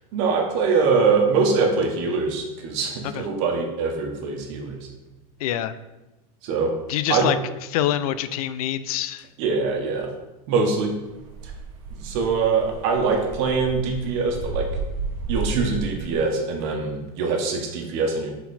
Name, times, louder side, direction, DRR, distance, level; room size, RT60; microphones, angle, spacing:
voice 1, 0.1-4.9 6.4-6.7 7.1-7.3 9.4-10.1 10.5-10.9 11.4-11.5 11.9-14.7 15.3-18.3, right 4 dB, 50° right, 2 dB, 1.2 m, -23 dB
voice 2, 5.4-5.7 6.9-7.4 7.7-9.3, left 12 dB, 75° left, 13 dB, 0.4 m, -25 dB
sound 1, 11.1-16.1, right 3 dB, 75° right, 1.1 m, -32 dB
6.5 x 4.0 x 4.2 m, 1.0 s
supercardioid pair, 165°, 19 cm